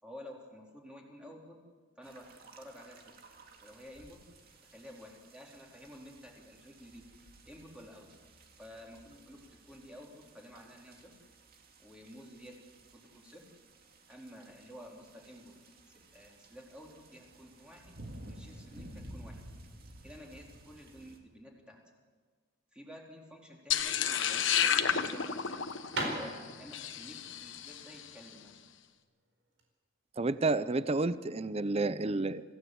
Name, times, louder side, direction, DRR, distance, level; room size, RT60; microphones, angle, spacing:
voice 1, 0.0-1.6 2.0-3.1 3.6-4.2 4.6-7.0 7.4-8.1 8.6-11.1 11.8-12.5 12.9-13.5 14.1-15.5 15.9-17.9 18.3-19.4 20.0-21.8 22.7-25.7 26.1-28.6, equal, 5° right, -1 dB, 3.9 m, -51 dB
sound 1, 2.0-21.2, right 1 dB, 50° right, 2.3 m, -54 dB
sound 2, 23.7-28.0, left 8 dB, 65° left, 1.2 m, -31 dB
sound 3, 25.8-29.7, right 1 dB, 70° right, 4.5 m, -41 dB
voice 2, 30.2-32.4, right 3 dB, 30° right, 15 dB, 0.6 m, -30 dB
26.0 x 16.0 x 7.9 m, 1.5 s
head